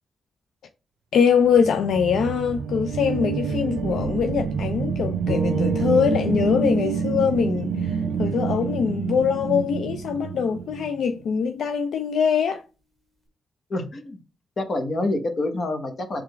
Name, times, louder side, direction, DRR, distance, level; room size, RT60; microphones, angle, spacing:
voice 1, 1.1-12.6, left 6 dB, 85° left, 0.4 m, -23 dB
sound 1, 1.6-10.9, right 5 dB, 85° right, 0.5 m, -27 dB
sound 2, 5.3-9.4, equal, 15° right, 1.0 m, -36 dB
voice 2, 13.7-14.2 14.6-16.2, left 2 dB, 50° left, 1.1 m, -27 dB
3.7 x 3.3 x 3.4 m
cardioid pair, 75°, 0 cm